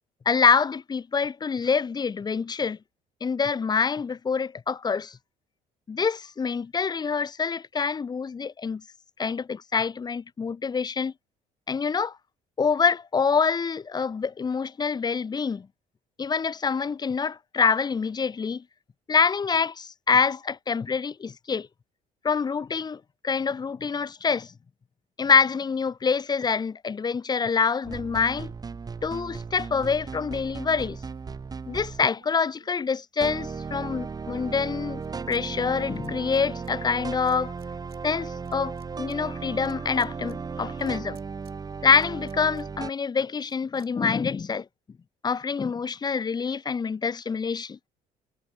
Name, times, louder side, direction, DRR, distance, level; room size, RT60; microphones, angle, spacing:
voice 1, 0.3-2.8 3.2-5.2 5.9-8.8 9.2-11.1 11.7-12.2 12.6-15.7 16.2-18.6 19.1-21.7 22.2-24.5 25.2-28.5 29.0-31.0 31.7-35.0 35.3-37.5 38.0-41.2 41.8-44.7 45.2-47.8, left 5 dB, 25° left, 0.6 m, -26 dB
sound 1, 27.8-32.1 33.2-42.9, right 5 dB, 20° right, 0.7 m, -36 dB
sound 2, 28.4-33.5 34.0-35.4 35.7-36.7 37.3-38.0 38.3-44.4, right 13 dB, 70° right, 7.6 m, -63 dB
cardioid pair, 110°, 17 cm